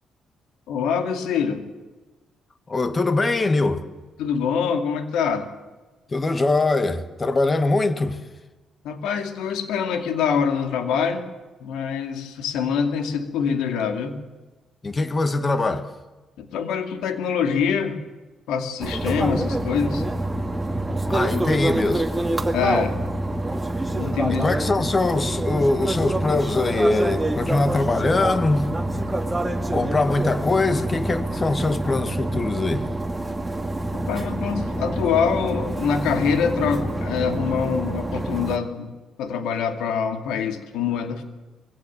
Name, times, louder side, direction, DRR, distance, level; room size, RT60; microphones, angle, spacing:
voice 1, 0.7-1.6 4.2-5.5 8.8-11.3 11.6-14.2 16.4-18.0 18.5-20.0 22.5-23.0 23.9-24.4 33.9-38.9 39.2-41.2, left 6 dB, 90° left, 2.4 m, -25 dB
voice 2, 2.7-3.9 6.1-8.2 14.8-15.9 21.1-22.1 24.3-28.7 29.7-32.9, left 2 dB, 30° left, 1.8 m, -22 dB
sound 1, 18.8-38.6, right 1 dB, 15° right, 2.0 m, -26 dB
21.5 x 17.0 x 7.5 m
cardioid pair, 90°, 0 cm